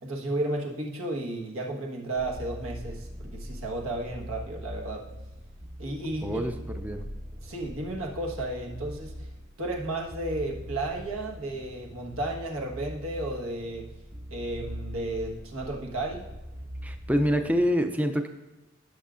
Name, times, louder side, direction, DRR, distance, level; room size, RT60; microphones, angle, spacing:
voice 1, 0.0-5.1 5.8-6.4 7.4-9.1 9.6-13.8 14.3-16.3, right 2 dB, 90° right, -1 dB, 1.4 m, -33 dB
sound 1, 2.1-17.6, equal, 45° right, 2.2 m, -42 dB
voice 2, 6.2-7.1 16.8-18.3, equal, 5° right, 7 dB, 0.4 m, -26 dB
15.5 x 6.4 x 2.5 m, 1.0 s
head